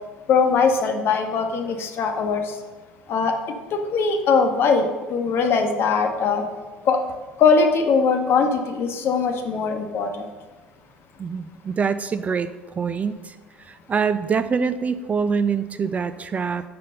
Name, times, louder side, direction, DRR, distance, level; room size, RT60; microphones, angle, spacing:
voice 1, 0.3-2.4 3.1-3.3 3.9-6.4 6.9-7.0 7.4-10.1, left 5 dB, 50° left, 5 dB, 0.9 m, -20 dB
voice 2, 11.2-12.5 12.8-13.3 13.7-16.6, right 5 dB, 30° right, 12 dB, 0.3 m, -24 dB
5.6 x 5.1 x 5.4 m, 1.3 s
figure-of-eight pair, 60°, 5 cm